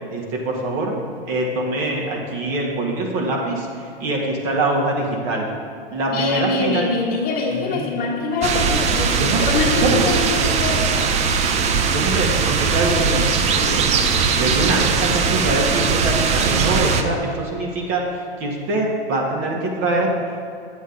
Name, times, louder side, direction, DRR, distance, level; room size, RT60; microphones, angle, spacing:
voice 1, 0.1-0.9 1.3-5.5 5.9-6.8 7.5-7.9 9.2-10.0 11.9-13.2 13.5-14.0 14.3-18.0 18.4-20.1, right 2 dB, 45° right, -1 dB, 1.8 m, -23 dB
voice 2, 6.1-10.9, left 4 dB, 30° left, -3 dB, 1.5 m, -24 dB
sound 1, 8.4-17.0, right 5 dB, 20° right, 0.5 m, -20 dB
8.2 x 8.0 x 3.9 m, 2.4 s
hypercardioid pair, 110°, 31 cm